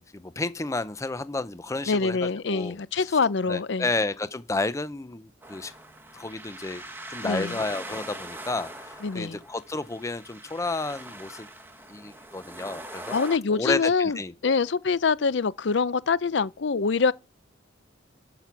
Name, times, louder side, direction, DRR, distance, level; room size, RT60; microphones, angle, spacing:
voice 1, 0.0-3.2 3.5-5.7 6.1-6.8 7.1-11.5 11.9-13.2 13.5-14.5, left 2 dB, 15° left, 0.5 m, -31 dB
voice 2, 1.9-3.9 7.2-7.6 9.0-9.4 13.1-14.2 14.4-17.1, left 5 dB, 65° left, 0.5 m, -25 dB
sound 1, 5.4-13.4, right 1 dB, 10° right, 1.5 m, -42 dB
13.0 x 5.9 x 5.9 m
head